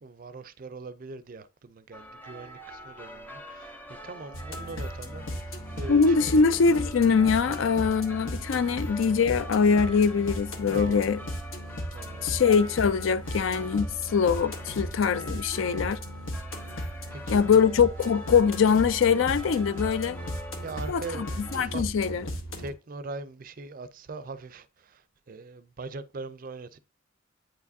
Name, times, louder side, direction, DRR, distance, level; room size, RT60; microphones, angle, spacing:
voice 1, 0.0-3.8 4.0-6.5 7.5-7.6 10.7-11.1 11.9-12.4 17.1-17.7 20.6-21.8 22.6-26.8, right 3 dB, 45° right, 0.4 m, -41 dB
sound 1, 1.9-21.7, equal, 10° left, 0.7 m, -44 dB
sound 2, 4.3-22.7, equal, 90° left, 1.2 m, -36 dB
voice 2, 5.9-11.2 12.2-16.0 17.3-20.2 20.9-22.3, left 6 dB, 70° left, 0.4 m, -23 dB
9.0 x 4.8 x 2.6 m
head